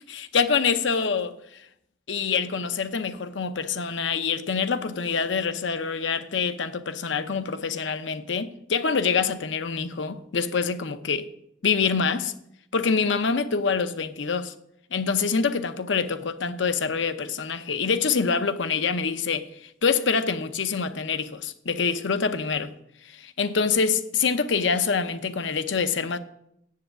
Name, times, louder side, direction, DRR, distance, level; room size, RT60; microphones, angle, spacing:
voice 1, 0.1-1.4 2.1-11.3 11.6-12.3 12.7-14.5 14.9-22.7 23.0-26.2, left 5 dB, 75° left, 0.7 m, -25 dB
7.9 x 7.6 x 7.4 m
head